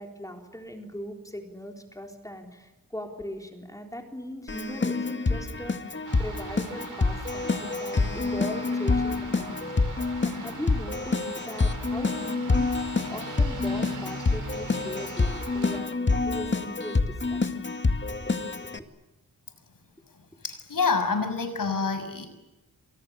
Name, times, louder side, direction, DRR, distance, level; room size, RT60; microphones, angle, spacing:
voice 1, 0.0-17.7 18.2-18.4 18.7-18.9, equal, 10° left, 3 dB, 4.0 m, -39 dB
Keyboard (musical), 4.5-18.8, left 3 dB, 35° left, 2.0 m, -27 dB
sound 1, 6.1-15.8, right 4 dB, 60° right, 7.0 m, -42 dB
voice 2, 20.4-22.3, left 4 dB, 70° left, 8 dB, 6.6 m, -27 dB
30.0 x 27.0 x 7.1 m, 1.0 s
wide cardioid pair, 130°, 34 cm